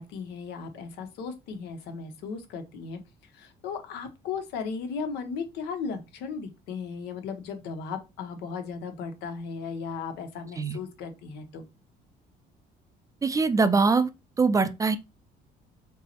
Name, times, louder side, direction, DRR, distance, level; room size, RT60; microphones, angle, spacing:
voice 1, 0.0-3.0 3.3-11.6, left 5 dB, 85° left, 0.8 m, -36 dB
voice 2, 13.2-14.1 14.4-15.0, right 4 dB, 20° right, 0.3 m, -22 dB
5.4 x 2.0 x 2.8 m
cardioid pair, 110°, 17 cm